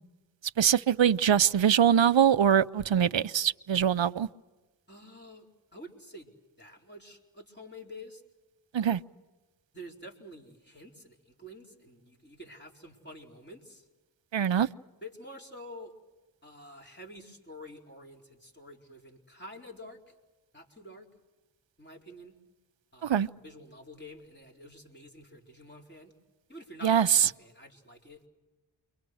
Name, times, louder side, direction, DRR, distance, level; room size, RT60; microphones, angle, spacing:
voice 1, 0.6-4.3 8.7-9.0 14.3-14.7 23.0-23.3 26.8-27.1, right 8 dB, 70° right, 13 dB, 0.7 m, -23 dB
voice 2, 4.9-6.3 6.6-8.2 9.7-13.9 15.0-15.9 16.4-20.1 20.5-21.1 21.8-22.4 22.9-26.1 26.5-28.2, left 1 dB, 20° left, 0 dB, 4.5 m, -48 dB
29.5 x 23.5 x 6.4 m, 1.2 s
wide cardioid pair, 60°, 47 cm